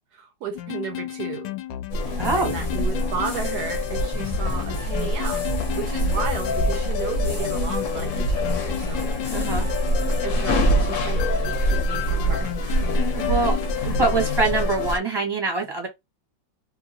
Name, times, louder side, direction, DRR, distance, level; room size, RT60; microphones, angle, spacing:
voice 1, 0.1-1.5 2.0-5.4 5.8-9.1 10.2-12.9, right 6 dB, 70° right, 1.0 m, -34 dB
sound 1, 0.5-15.0, left 13 dB, 75° left, 1.2 m, -33 dB
sound 2, 1.9-15.0, equal, 55° left, 0.9 m, -25 dB
sound 3, 2.2-10.2, left 5 dB, 30° left, 0.9 m, -36 dB
voice 2, 2.2-2.5 9.3-9.7 13.1-13.6 13.8-15.9, right 3 dB, 15° right, 0.9 m, -24 dB
2.8 x 2.8 x 2.7 m
omnidirectional pair, 2.0 m